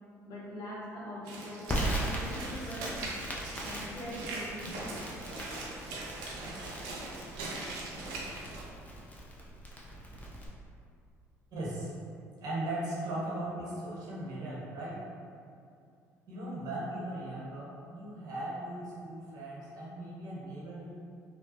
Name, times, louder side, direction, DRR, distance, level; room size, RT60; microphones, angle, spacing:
voice 1, 0.2-3.1 3.6-5.1, left 1 dB, 55° left, -7 dB, 0.9 m, -43 dB
Walk footsteps / Splash splatter, 1.2-8.6, right 2 dB, 70° right, 0.5 m, -41 dB
Crackle, 1.7-10.5, right 1 dB, 20° left, 0.6 m, -39 dB
voice 2, 11.5-11.9 12.4-15.0 16.3-20.9, right 1 dB, 55° right, -6 dB, 1.0 m, -38 dB
2.8 x 2.2 x 2.7 m, 2.4 s
hypercardioid pair, 55°, 8 cm